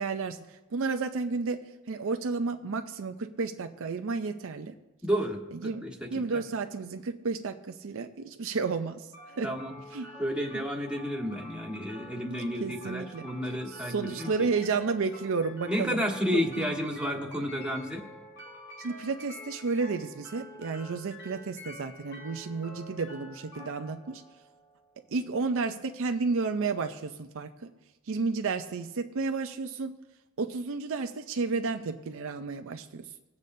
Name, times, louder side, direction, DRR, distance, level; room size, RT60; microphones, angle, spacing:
voice 1, 0.0-4.7 5.5-9.5 9.9-10.1 10.5-10.6 12.6-16.0 16.3-16.7 18.8-24.2 25.1-27.7 28.1-29.9 30.4-33.1, right 4 dB, 65° right, 7 dB, 0.5 m, -32 dB
voice 2, 5.0-6.4 9.4-9.8 10.2-14.3 15.7-18.0, equal, 5° right, -2 dB, 1.6 m, -31 dB
sound 1, 9.1-25.1, left 1 dB, 55° left, 3.6 m, -48 dB
20.0 x 8.4 x 2.7 m, 1.1 s
head